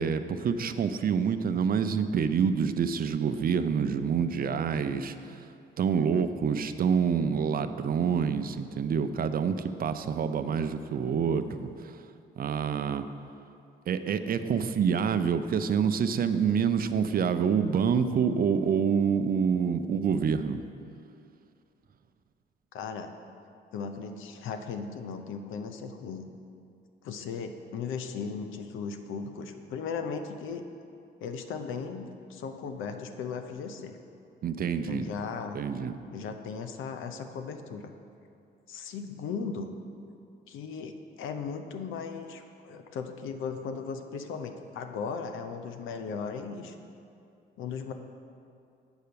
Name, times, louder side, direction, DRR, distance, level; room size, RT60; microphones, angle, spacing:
voice 1, 0.0-5.5 5.8-12.0 12.4-13.0 13.9-20.6 34.4-35.1 35.5-35.9, right 6 dB, 50° right, 10 dB, 0.5 m, -27 dB
voice 2, 22.7-23.1 23.7-26.3 27.0-30.7 31.2-34.0 34.8-35.6 36.1-37.9 38.7-39.7 40.5-46.7 47.6-47.9, left 5 dB, 85° left, 7 dB, 0.7 m, -37 dB
8.0 x 5.6 x 6.8 m, 2.5 s
cardioid pair, 90°, 20 cm